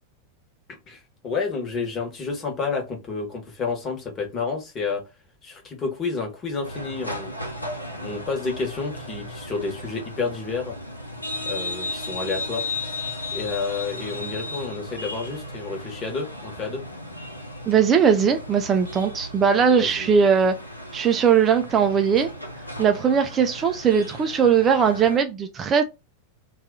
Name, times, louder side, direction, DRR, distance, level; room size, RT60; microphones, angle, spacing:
voice 1, 0.9-5.0 5.4-7.3 8.0-10.8 11.4-13.0 13.3-16.8 19.7-20.1, left 4 dB, 30° left, 1.1 m, -30 dB
sound 1, 6.6-25.2, left 1 dB, 85° left, 0.6 m, -35 dB
voice 2, 17.7-20.5 20.9-22.3 22.8-25.8, right 7 dB, 25° right, 0.4 m, -19 dB
2.7 x 2.4 x 3.7 m
figure-of-eight pair, 90°, 0 cm